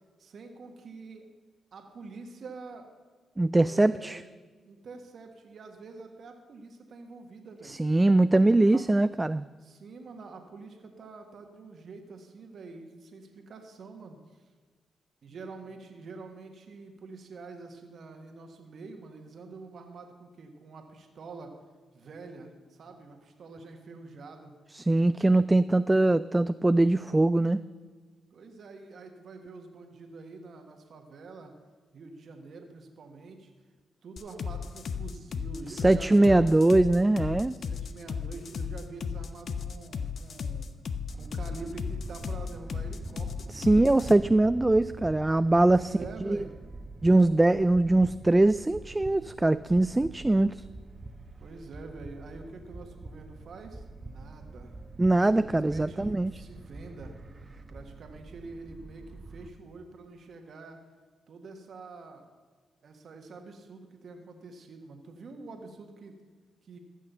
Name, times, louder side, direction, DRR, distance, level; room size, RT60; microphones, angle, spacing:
voice 1, 0.2-1.3 1.7-2.9 3.6-4.3 4.6-7.8 8.3-9.2 9.6-14.5 15.2-21.5 21.9-24.5 28.3-31.5 31.9-33.5 34.0-36.4 37.5-40.7 41.1-43.7 45.5-46.5 51.3-54.8 55.2-57.1 57.7-60.8 61.3-62.3 62.8-66.2 66.6-66.8, right 3 dB, 60° right, 4 dB, 1.5 m, -46 dB
voice 2, 3.4-4.2 7.7-9.5 24.7-27.6 35.8-37.5 43.5-46.0 46.2-46.5 47.0-50.6 55.0-56.3, right 2 dB, 20° right, 14 dB, 0.3 m, -22 dB
sound 1, 34.2-44.1, left 6 dB, 60° left, 0.7 m, -35 dB
sound 2, 41.1-59.5, right 3 dB, 40° right, 1.2 m, -45 dB
14.5 x 6.5 x 6.8 m, 1.4 s
hypercardioid pair, 40°, 0 cm